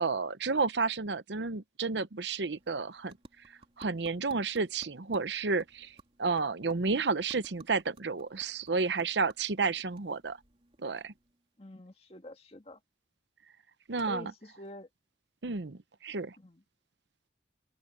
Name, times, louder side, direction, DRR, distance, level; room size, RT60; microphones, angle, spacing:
voice 1, 0.0-3.1 3.8-10.4 10.8-11.1 13.9-14.3 15.4-16.4, right 4 dB, 80° right, 0.9 m, -31 dB
sound 1, 2.1-11.6, right 2 dB, 35° right, 3.6 m, -59 dB
voice 2, 11.6-12.8 14.1-14.9 16.4-16.6, left 2 dB, 35° left, 2.0 m, -47 dB
open air
head